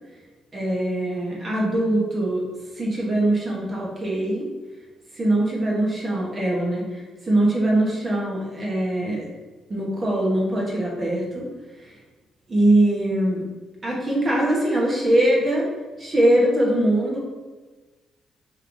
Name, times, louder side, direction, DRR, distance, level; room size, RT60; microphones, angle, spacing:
voice 1, 0.5-2.5 2.7-4.5 5.1-9.3 9.7-11.5 11.8-12.0 12.5-13.4 13.8-15.7 16.0-17.3, right 1 dB, 30° right, -3 dB, 1.2 m, -22 dB
3.7 x 3.4 x 3.5 m, 1.3 s
cardioid pair, 90°, 0 cm